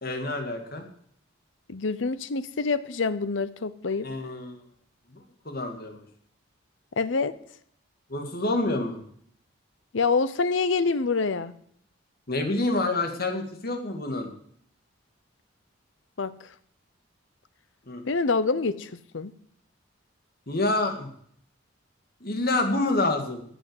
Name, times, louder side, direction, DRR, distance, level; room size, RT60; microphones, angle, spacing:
voice 1, 0.0-0.9 4.0-4.6 5.1-6.0 8.1-9.0 12.3-14.3 17.9-18.0 20.5-21.1 22.2-23.4, left 2 dB, 50° left, 5 dB, 2.1 m, -28 dB
voice 2, 1.7-4.1 7.0-7.3 9.9-11.5 16.2-16.3 18.1-19.3, left 4 dB, 65° left, 15 dB, 0.7 m, -26 dB
15.0 x 6.3 x 7.9 m, 0.65 s
head